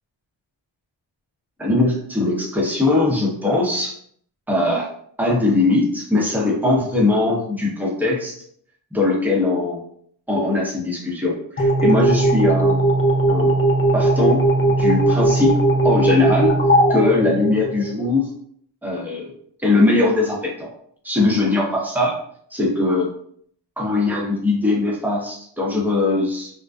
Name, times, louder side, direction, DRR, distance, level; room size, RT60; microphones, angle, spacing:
voice 1, 1.6-3.9 4.5-4.9 5.2-8.4 8.9-9.8 10.3-12.8 13.3-13.5 13.9-14.4 14.8-15.5 15.8-16.5 16.9-18.3 18.8-19.3 19.6-20.7 21.0-22.2 22.5-23.1 23.8-26.5, left 2 dB, 5° right, -3 dB, 0.8 m, -20 dB
sound 1, 11.6-18.1, right 2 dB, 30° left, 0.6 m, -18 dB
2.6 x 2.2 x 2.3 m, 0.64 s
cardioid pair, 65°, 47 cm